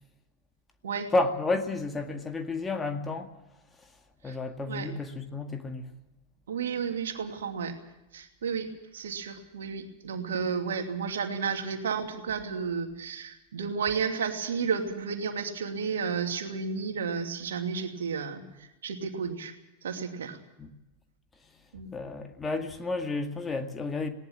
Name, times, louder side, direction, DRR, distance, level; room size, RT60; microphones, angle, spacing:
voice 1, 1.1-3.3 4.2-5.9 20.6-20.7 21.9-24.1, left 3 dB, 15° left, 6 dB, 2.0 m, -31 dB
voice 2, 6.5-7.7 8.1-19.5 19.8-20.4 21.7-21.9, right 6 dB, 65° right, 5 dB, 2.7 m, -32 dB
20.0 x 18.5 x 7.3 m, 0.95 s
figure-of-eight pair, 90°, 0 cm